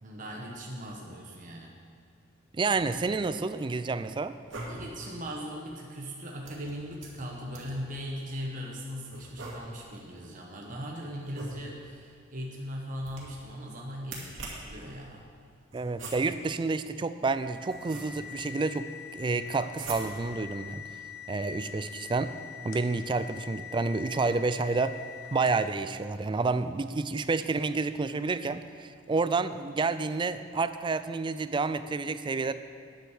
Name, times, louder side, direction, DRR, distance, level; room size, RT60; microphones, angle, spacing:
voice 1, 0.0-1.8 4.7-15.3, equal, 45° right, -1 dB, 1.1 m, -39 dB
voice 2, 2.5-4.4 15.7-20.8 21.3-22.3 22.6-25.0 25.3-32.5, right 3 dB, 25° right, 12 dB, 0.4 m, -29 dB
sound 1, 2.6-3.3 4.3-5.1 6.4-7.9 9.1-10.0 11.2-12.0 13.0-13.5 14.0-14.8 15.7-16.5 17.3-18.4 19.7-20.4, right 2 dB, 85° right, 2.4 m, -43 dB
sound 2, 17.2-25.8, left 8 dB, 80° left, 1.0 m, -44 dB
10.0 x 7.7 x 6.5 m, 2.3 s
head